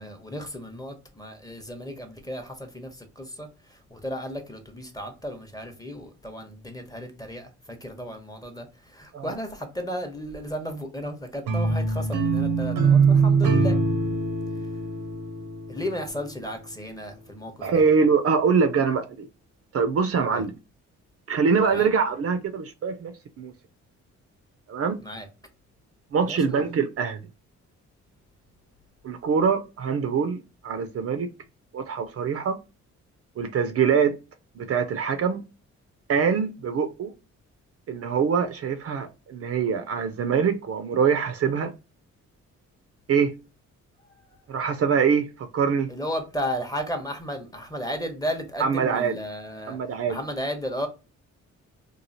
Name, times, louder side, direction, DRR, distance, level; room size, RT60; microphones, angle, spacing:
voice 1, 0.0-13.8 15.7-17.8 20.3-20.4 21.7-21.9 25.0-25.3 26.2-26.6 45.9-49.8 50.1-50.9, equal, 10° left, 0.8 m, -34 dB
sound 1, 11.5-16.6, right 4 dB, 85° right, 0.7 m, -23 dB
voice 2, 17.6-19.3 19.7-20.6 21.3-23.5 24.7-24.9 26.1-27.2 29.0-31.3 31.7-32.6 33.4-34.2 34.6-35.4 36.1-37.1 37.9-41.7 43.1-43.3 44.5-45.9 48.6-49.2 49.7-50.2, right 6 dB, 50° right, 0.5 m, -24 dB
3.0 x 2.3 x 2.6 m
cardioid pair, 80°, 30 cm